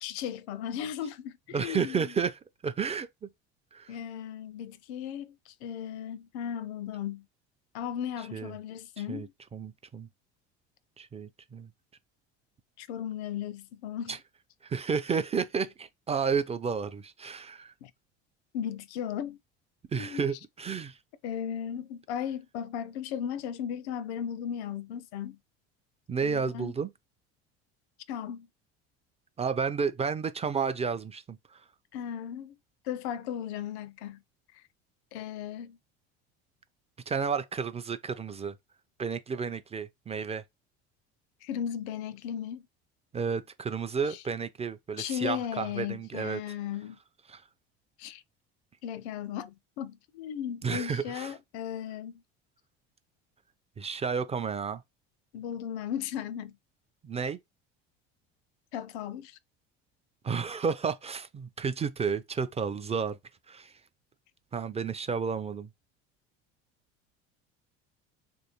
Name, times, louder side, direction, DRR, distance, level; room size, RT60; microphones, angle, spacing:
voice 1, 0.0-2.1 3.9-7.3 7.7-9.3 12.8-14.2 17.8-17.9 18.5-19.4 19.9-20.3 21.2-25.4 26.2-26.7 28.1-28.5 31.9-32.6 32.8-34.2 34.5-34.6 35.1-35.8 41.4-42.7 44.1-44.2 45.0-47.0 48.0-48.2 48.8-52.2 55.3-56.6 58.7-59.4, left 9 dB, 75° left, 0.6 m, -36 dB
voice 2, 1.5-2.3 2.6-3.1 3.7-4.0 8.3-8.5 9.1-9.3 9.5-10.1 11.0-11.7 14.1-14.2 14.6-17.7 19.9-21.0 26.1-26.9 29.4-31.4 37.1-38.5 39.0-40.4 43.1-46.4 47.3-47.4 50.6-51.3 53.8-54.8 57.0-57.4 60.2-63.2 63.5-63.7 64.5-65.7, right 6 dB, 20° right, 0.4 m, -31 dB
3.0 x 2.6 x 2.9 m
hypercardioid pair, 75°, 33 cm